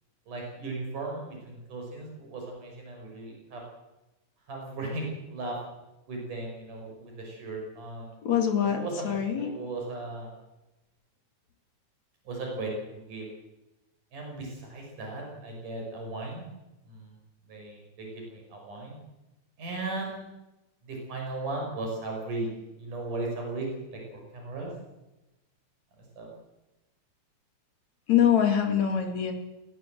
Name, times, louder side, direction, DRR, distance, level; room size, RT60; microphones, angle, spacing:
voice 1, 0.3-3.6 4.5-5.6 6.1-8.1 8.6-10.3 12.3-13.3 14.1-16.5 16.9-17.1 17.5-19.0 19.6-20.2 20.8-22.5 22.8-24.7 26.2-26.3, right 2 dB, 80° right, 0 dB, 7.4 m, -36 dB
voice 2, 8.2-9.5 28.1-29.3, left 9 dB, 60° left, 5 dB, 3.8 m, -24 dB
21.5 x 19.0 x 7.8 m, 1.0 s
omnidirectional pair, 3.6 m